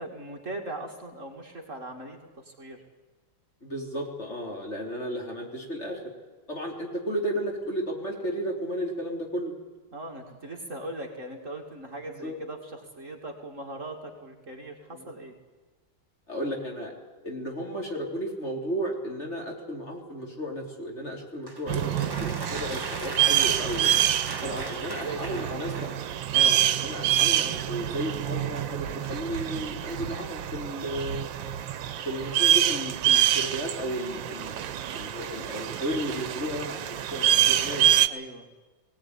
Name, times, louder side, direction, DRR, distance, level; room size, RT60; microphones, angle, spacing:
voice 1, 0.0-2.2 2.5-2.8 9.9-15.3 24.4-25.4 38.1-38.5, right 2 dB, 40° right, 1 dB, 2.7 m, -39 dB
voice 2, 3.6-6.0 6.5-9.6 12.1-12.4 14.9-15.1 16.3-16.9 17.2-23.9 24.4-26.0 26.3-31.3 32.1-34.7 34.9-37.9, equal, 35° left, 0 dB, 4.0 m, -33 dB
sound 1, 21.5-26.6, right 2 dB, 15° right, 1.4 m, -39 dB
sound 2, 21.7-38.1, right 11 dB, 80° right, 1.6 m, -26 dB
20.5 x 18.5 x 9.7 m, 1.3 s
omnidirectional pair, 2.0 m